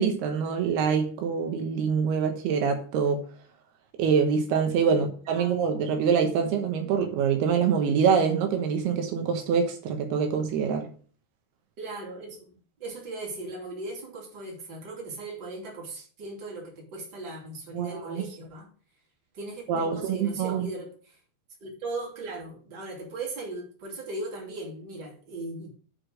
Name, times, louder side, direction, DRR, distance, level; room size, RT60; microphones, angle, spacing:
voice 1, 0.0-3.2 4.0-10.9 17.7-18.3 19.7-20.7, right 6 dB, 80° right, 3.1 m, -25 dB
voice 2, 4.9-5.6 11.8-18.7 19.3-21.2 21.6-25.7, right 2 dB, 30° right, 2.9 m, -38 dB
8.5 x 4.9 x 6.3 m
omnidirectional pair, 4.6 m